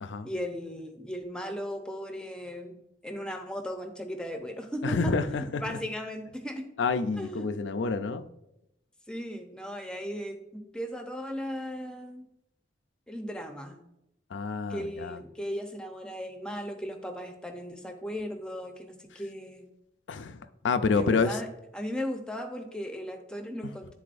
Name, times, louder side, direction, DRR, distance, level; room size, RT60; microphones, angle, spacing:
voice 1, 0.2-2.8 3.0-6.7 7.2-7.6 9.1-12.3 13.1-13.8 14.7-19.7 20.9-21.5 21.7-23.9, equal, 5° left, 4 dB, 0.7 m, -37 dB
voice 2, 4.8-5.6 6.8-8.3 14.3-15.2 20.1-21.4, left 4 dB, 90° left, 11 dB, 0.5 m, -28 dB
11.5 x 4.1 x 2.5 m, 0.86 s
head